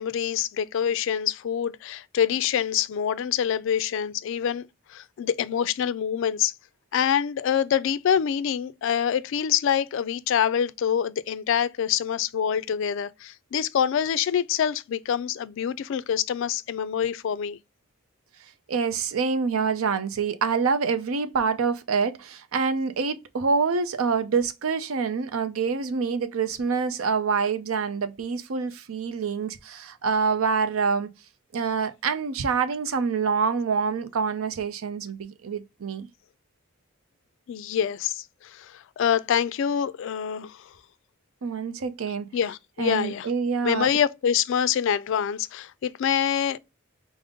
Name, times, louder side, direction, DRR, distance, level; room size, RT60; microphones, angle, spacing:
voice 1, 0.0-6.5 6.9-17.6 37.5-40.7 42.3-43.3 43.6-46.6, left 8 dB, 60° left, 0.3 m, -26 dB
voice 2, 18.7-31.1 31.5-36.1 41.4-42.3 42.8-43.9, right 5 dB, 75° right, 0.5 m, -26 dB
5.1 x 2.0 x 3.6 m
head